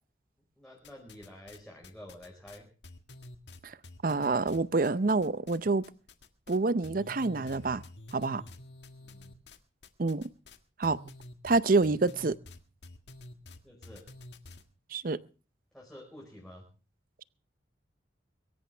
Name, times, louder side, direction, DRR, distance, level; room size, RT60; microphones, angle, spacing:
voice 1, 0.6-2.6 9.0-9.3 13.6-14.1 15.7-16.6, left 1 dB, 5° left, 4.7 m, -49 dB
sound 1, 0.8-1.6 1.8-5.6 5.8-6.6 6.8-14.6, left 2 dB, 70° left, 1.7 m, -49 dB
voice 2, 4.0-5.9 6.5-7.8 8.1-8.4 10.0-10.3 10.8-11.0 11.4-12.4 14.9-15.2, right 3 dB, 50° right, 0.6 m, -27 dB
23.0 x 14.0 x 3.4 m
head